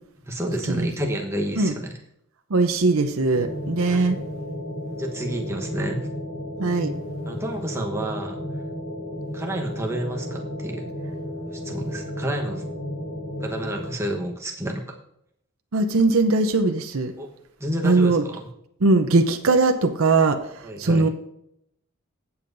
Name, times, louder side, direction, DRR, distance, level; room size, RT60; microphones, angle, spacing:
voice 1, 0.3-2.0 3.8-4.1 5.0-6.1 7.3-8.4 9.3-10.9 11.5-12.6 13.4-15.0 17.2-17.3 17.6-18.4 20.6-21.1, right 1 dB, 10° right, 1 dB, 1.1 m, -29 dB
voice 2, 2.5-4.2 6.6-6.9 15.7-17.1 17.8-18.2 18.8-21.1, right 3 dB, 85° right, 7 dB, 0.7 m, -20 dB
sound 1, 3.3-13.9, left 1 dB, 50° left, 3.2 m, -33 dB
16.0 x 7.2 x 2.6 m, 0.76 s
head